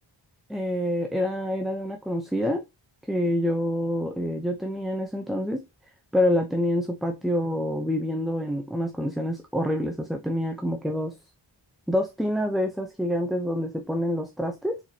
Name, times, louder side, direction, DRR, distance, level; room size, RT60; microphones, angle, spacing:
voice 1, 0.5-2.6 3.1-5.6 6.1-11.1 11.9-14.8, left 1 dB, ahead, 0.7 m, -27 dB
4.4 x 4.3 x 2.8 m
wide cardioid pair, 65°, 46 cm